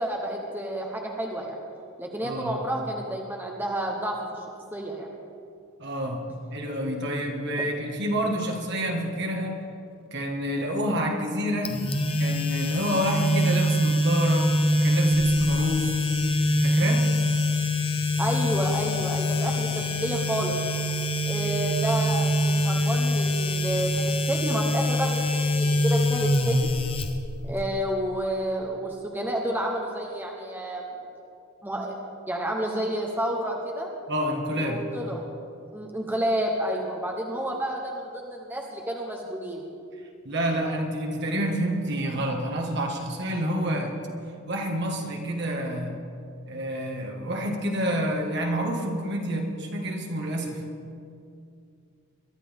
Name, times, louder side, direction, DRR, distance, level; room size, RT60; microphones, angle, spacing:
voice 1, 0.0-1.6 2.0-5.1 18.2-20.6 21.3-26.7 27.4-30.9 31.6-32.0 32.3-33.9 34.6-35.2 35.7-39.7, right 1 dB, 10° right, 0 dB, 1.1 m, -30 dB
voice 2, 2.2-2.5 5.8-6.2 6.5-9.6 10.1-11.8 12.2-15.9 16.6-17.1 34.1-34.8 40.3-43.9 44.5-46.0 46.5-50.7, equal, 55° right, 1 dB, 1.8 m, -28 dB
sound 1, 11.7-27.6, left 1 dB, 25° left, 0.9 m, -24 dB
22.5 x 12.5 x 3.7 m, 2.4 s
head